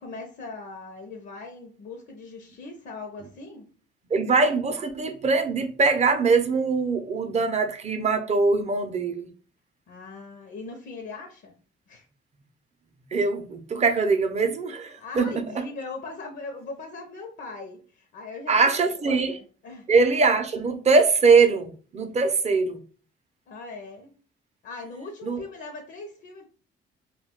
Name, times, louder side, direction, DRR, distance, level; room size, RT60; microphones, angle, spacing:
voice 1, 0.0-3.7 9.9-11.6 11.9-12.1 15.0-19.9 23.5-24.1 24.6-26.4, left 3 dB, 65° left, 0.6 m, -40 dB
voice 2, 4.1-9.3 13.1-15.3 18.5-19.3 19.9-22.8 25.2-25.4, right 4 dB, 35° right, 0.5 m, -22 dB
2.2 x 2.2 x 3.5 m
cardioid pair, 90°, 20 cm